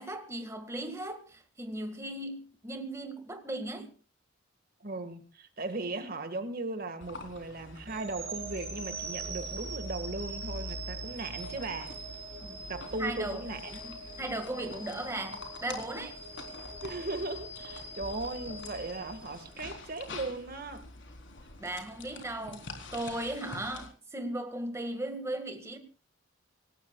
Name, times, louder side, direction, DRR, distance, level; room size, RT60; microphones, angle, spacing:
voice 1, 0.0-3.9 12.4-12.6 13.0-13.4 13.8-16.2 21.6-25.8, right 1 dB, 15° right, 1.8 m, -37 dB
voice 2, 4.8-11.9 12.7-13.8 16.8-20.9 22.4-22.6, right 2 dB, 50° right, 1.8 m, -37 dB
sound 1, 7.0-23.9, left 2 dB, 70° left, 3.9 m, -45 dB
sound 2, 7.9-20.0, right 3 dB, 35° right, 5.9 m, -43 dB
27.0 x 18.0 x 2.4 m
head